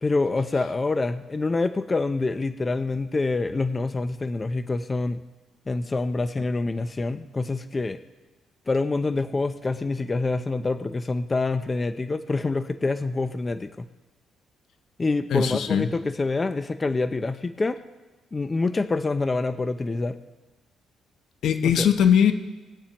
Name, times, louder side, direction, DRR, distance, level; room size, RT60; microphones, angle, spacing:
voice 1, 0.0-5.2 5.7-8.0 8.7-13.9 15.0-17.8 18.3-20.2 21.6-21.9, left 3 dB, 25° left, 11 dB, 0.5 m, -26 dB
voice 2, 15.3-15.9 21.4-22.3, left 8 dB, 70° left, 9 dB, 0.8 m, -20 dB
22.5 x 8.9 x 3.0 m, 1.2 s
cardioid pair, 90°, 0 cm